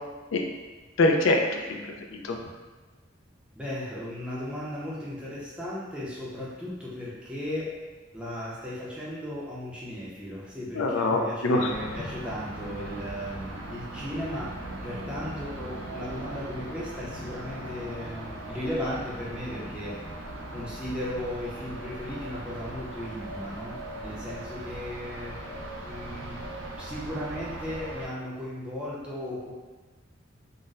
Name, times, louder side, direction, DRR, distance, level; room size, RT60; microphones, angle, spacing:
voice 1, 1.0-2.4 10.8-11.7, left 2 dB, 75° left, 2 dB, 0.4 m, -24 dB
voice 2, 3.6-7.8 8.1-14.6 14.8-20.0 20.5-25.3 25.8-26.4 26.8-29.5, left 1 dB, 5° right, -7 dB, 0.6 m, -36 dB
sound 1, 11.7-28.1, right 1 dB, 75° right, 0.5 m, -39 dB
2.5 x 2.1 x 3.9 m, 1.3 s
head